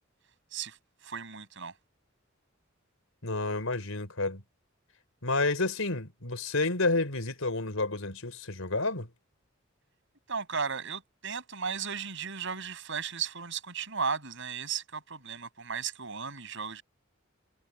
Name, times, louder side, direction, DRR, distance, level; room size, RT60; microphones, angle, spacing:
voice 1, 1.0-1.7 10.3-16.8, right 6 dB, 65° right, 7.8 m, -35 dB
voice 2, 3.2-4.4 5.2-9.1, left 3 dB, 80° left, 4.6 m, -30 dB
head